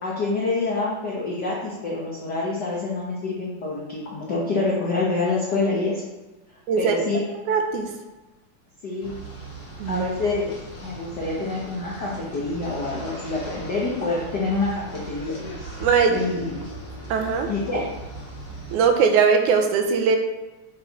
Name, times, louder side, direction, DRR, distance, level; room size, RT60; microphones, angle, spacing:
voice 1, 0.0-6.0 6.8-7.2 8.8-9.1 9.9-10.5 10.8-15.4 16.1-16.7 17.5-17.9, left 3 dB, 70° left, -5 dB, 0.9 m, -26 dB
voice 2, 6.7-7.1 7.5-7.9 9.8-10.1 15.8-16.2 17.1-17.5 18.7-20.2, right 6 dB, 80° right, 4 dB, 2.1 m, -20 dB
sound 1, 9.0-18.8, right 2 dB, 30° left, 1.2 m, -38 dB
7.3 x 4.5 x 4.1 m, 1.2 s
omnidirectional pair, 3.6 m